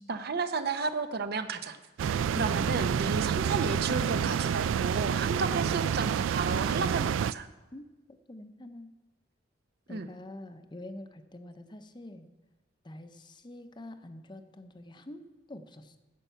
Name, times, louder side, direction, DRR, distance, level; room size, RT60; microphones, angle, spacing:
voice 1, 0.1-1.8 2.3-7.5 9.9-10.1, right 4 dB, 55° right, 10 dB, 0.7 m, -32 dB
sound 1, 2.0-7.3, right 8 dB, 85° right, 0.3 m, -28 dB
voice 2, 8.3-8.9 9.9-12.3 12.8-16.0, left 1 dB, 25° left, 9 dB, 0.7 m, -46 dB
10.0 x 8.3 x 6.9 m, 1.1 s
head